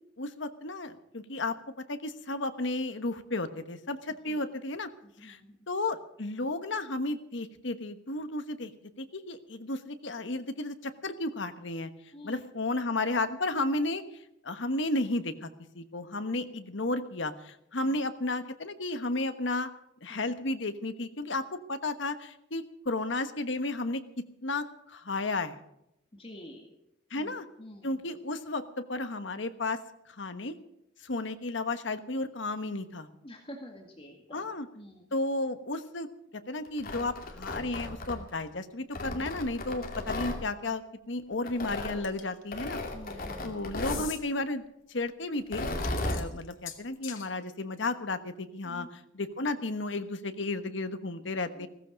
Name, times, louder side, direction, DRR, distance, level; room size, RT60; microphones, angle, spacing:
voice 1, 0.2-4.9 5.2-5.4 5.7-8.7 9.0-11.9 12.2-14.0 14.4-15.5 15.7-19.7 20.0-25.6 27.1-27.4 27.8-28.6 28.9-29.8 30.1-30.6 31.0-33.1 34.3-34.7 35.1-36.1 36.3-42.8 43.4-44.6 44.9-45.7 46.0-51.7, left 2 dB, 65° left, 9 dB, 1.2 m, -33 dB
voice 2, 5.0-5.6 12.1-12.4 17.8-18.0 20.1-20.2 26.1-26.7 27.2-27.3 27.6-28.1 33.2-34.4 34.7-35.1 42.6-43.5 48.6-48.9 51.6-51.7, equal, 30° left, 2 dB, 1.9 m, -48 dB
Tearing, 36.7-38.4 38.9-40.4 41.5-42.0 42.5-44.1 45.4-46.2, left 2 dB, 50° left, 2.5 m, -35 dB
sound 1, 42.0-42.4 43.8-44.2 45.7-47.3, left 10 dB, 85° left, 2.0 m, -42 dB
16.5 x 14.5 x 5.2 m, 0.80 s
head